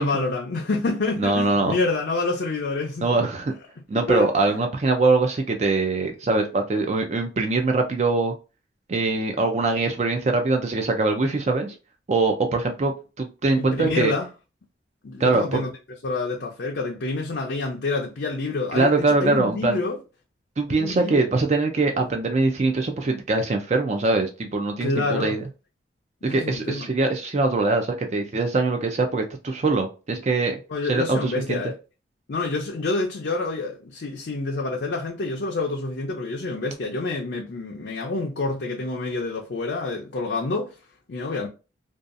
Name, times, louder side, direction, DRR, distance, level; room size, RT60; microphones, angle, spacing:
voice 1, 0.0-3.2 3.9-4.6 13.6-14.3 15.0-15.7 16.0-20.0 20.7-21.3 21.9-22.1 24.8-25.4 26.2-26.9 30.7-31.7 32.3-40.7 41.1-41.5, left 3 dB, 60° left, 0.5 m, -28 dB
voice 2, 1.2-1.8 3.0-3.5 3.9-8.3 8.9-11.7 12.1-14.1 15.2-15.7 18.7-19.8 20.6-25.4 26.2-30.6 30.8-31.6, right 3 dB, 35° right, 0.3 m, -23 dB
2.6 x 2.3 x 2.4 m
head